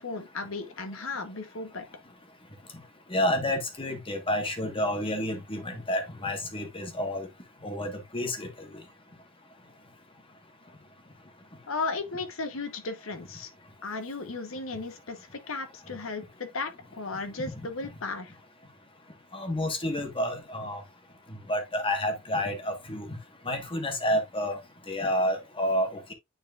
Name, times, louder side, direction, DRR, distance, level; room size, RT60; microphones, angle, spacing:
voice 1, 0.0-1.8 11.7-13.5 13.8-18.4, left 3 dB, 75° left, 1.1 m, -35 dB
voice 2, 3.1-7.3 7.6-8.5 19.3-20.8 21.3-23.1 23.4-24.6 24.9-26.1, left 1 dB, 25° left, 1.4 m, -29 dB
9.3 x 4.3 x 2.4 m
head